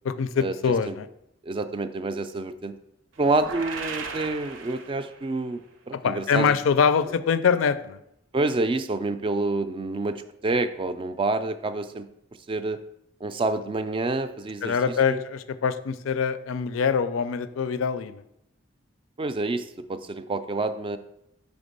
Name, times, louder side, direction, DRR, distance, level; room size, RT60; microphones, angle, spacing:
voice 1, 0.0-1.1 6.0-8.0 14.6-18.2, left 6 dB, 85° left, 12 dB, 0.4 m, -24 dB
voice 2, 1.4-2.7 3.2-5.6 5.9-6.6 8.3-12.1 12.5-12.8 13.2-15.2 19.2-21.0, right 2 dB, 25° right, 10 dB, 0.3 m, -28 dB
sound 1, 3.2-5.4, right 5 dB, 70° right, 0.6 m, -36 dB
5.1 x 3.5 x 5.3 m, 0.79 s
head